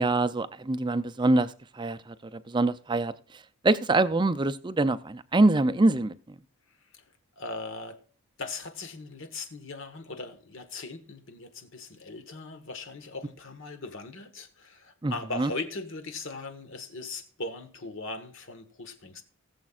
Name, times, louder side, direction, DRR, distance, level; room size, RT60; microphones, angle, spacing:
voice 1, 0.0-3.1 3.6-6.1 15.0-15.1 15.4-15.5, right 2 dB, 20° right, 13 dB, 0.5 m, -24 dB
voice 2, 6.9-8.0 8.4-19.2, left 3 dB, 60° left, 8 dB, 1.4 m, -39 dB
19.0 x 7.3 x 2.5 m, 0.42 s
head